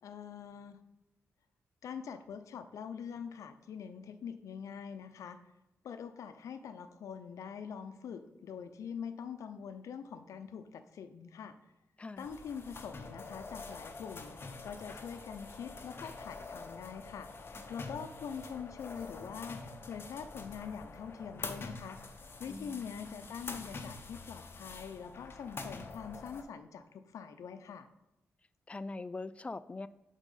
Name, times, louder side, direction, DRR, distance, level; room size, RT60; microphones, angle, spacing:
voice 1, 0.0-0.8 1.8-5.4 5.8-11.5 12.2-14.4 14.6-17.3 17.7-22.0 22.4-27.9, left 7 dB, 85° left, 10 dB, 0.5 m, -44 dB
sound 1, 12.2-26.4, left 3 dB, 45° left, 0.8 m, -46 dB
voice 2, 22.5-23.2 28.7-29.9, left 3 dB, 25° left, 15 dB, 0.3 m, -43 dB
7.4 x 3.6 x 5.4 m, 0.91 s
cardioid pair, 75°, 5 cm